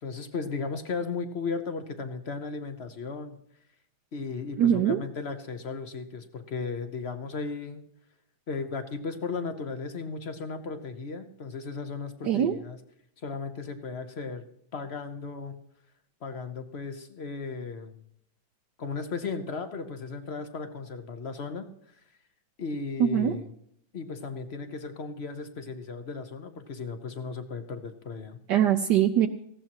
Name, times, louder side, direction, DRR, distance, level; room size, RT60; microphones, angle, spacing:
voice 1, 0.0-3.4 4.1-7.8 8.5-12.8 13.2-14.4 14.7-15.6 16.2-18.0 18.8-21.7 22.6-23.4 23.9-28.4, left 4 dB, 50° left, 8 dB, 0.8 m, -35 dB
voice 2, 4.6-5.0 12.2-12.6 23.0-23.3 28.5-29.3, right 10 dB, 70° right, 6 dB, 1.2 m, -22 dB
18.5 x 15.5 x 2.9 m, 0.72 s
omnidirectional pair, 2.1 m